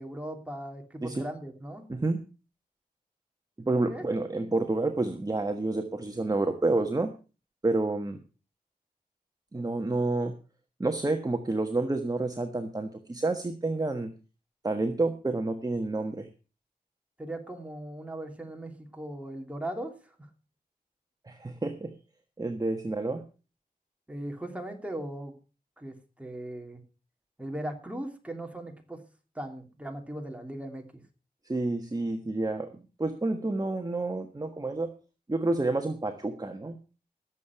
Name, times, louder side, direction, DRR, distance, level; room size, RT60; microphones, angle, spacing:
voice 1, 0.0-1.9 3.9-4.0 4.3-4.5 17.2-20.1 24.1-25.3 25.8-26.8 27.4-29.0 29.3-30.9, right 1 dB, 10° right, 3 dB, 2.9 m, -38 dB
voice 2, 3.6-7.1 7.6-8.2 9.5-10.3 10.8-14.1 14.6-16.3 21.2-21.9 22.4-23.2 31.4-32.7 33.0-34.9 35.3-36.8, right 2 dB, 25° right, 5 dB, 1.4 m, -29 dB
18.0 x 7.4 x 5.9 m, 0.35 s
wide cardioid pair, 95°, 15 cm